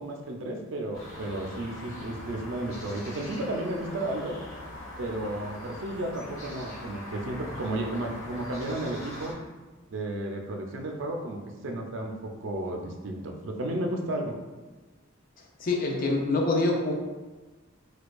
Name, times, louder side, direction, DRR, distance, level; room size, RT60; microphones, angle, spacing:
voice 1, 0.0-4.4 5.0-9.4 9.9-14.3, right 1 dB, 65° right, 2 dB, 0.4 m, -33 dB
sound 1, 0.9-9.3, left 1 dB, 90° left, 1.0 m, -42 dB
voice 2, 15.6-16.9, left 2 dB, 45° left, 1 dB, 0.5 m, -25 dB
4.3 x 2.3 x 2.3 m, 1.2 s
head